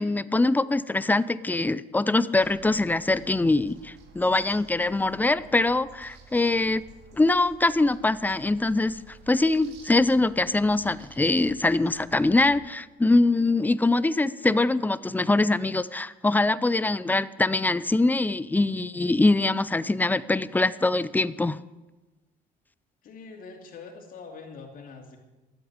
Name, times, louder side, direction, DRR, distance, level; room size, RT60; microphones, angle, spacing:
voice 1, 0.0-6.8 7.2-21.6, left 2 dB, 10° left, 16 dB, 0.5 m, -23 dB
sound 1, 2.4-12.6, right 5 dB, 85° right, 2.3 m, -51 dB
voice 2, 23.0-25.2, left 4 dB, 55° left, 2 dB, 2.7 m, -44 dB
13.0 x 8.2 x 9.7 m, 1.1 s
cardioid pair, 110°, 17 cm